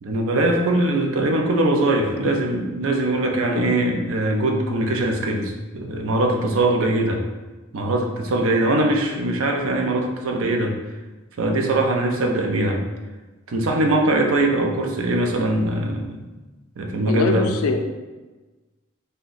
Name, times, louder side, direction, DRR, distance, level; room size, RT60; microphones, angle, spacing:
voice 1, 0.0-7.2 7.7-10.7 11.4-12.8 13.5-16.2 16.8-17.5, right 1 dB, 70° right, 2 dB, 0.5 m, -21 dB
voice 2, 17.1-17.8, left 3 dB, 90° left, 5 dB, 0.4 m, -23 dB
2.6 x 2.2 x 3.8 m, 1.2 s
head